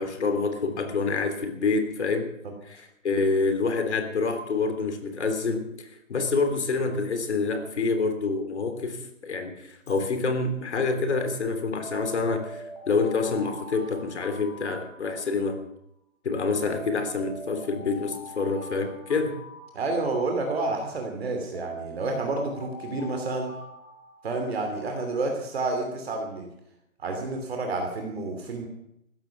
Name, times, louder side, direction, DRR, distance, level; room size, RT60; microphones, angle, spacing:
voice 1, 0.0-2.3 2.6-15.6 16.2-19.4, left 4 dB, 55° left, 7 dB, 3.4 m, -27 dB
Alarm, 9.7-10.1 11.8-15.5 16.7-20.4 21.5-24.8, equal, 5° left, 1.6 m, -43 dB
voice 2, 19.7-23.5 24.2-26.5 27.0-28.7, right 3 dB, 50° right, 3 dB, 3.0 m, -29 dB
15.0 x 13.5 x 5.9 m, 0.78 s
hypercardioid pair, 165°, 40 cm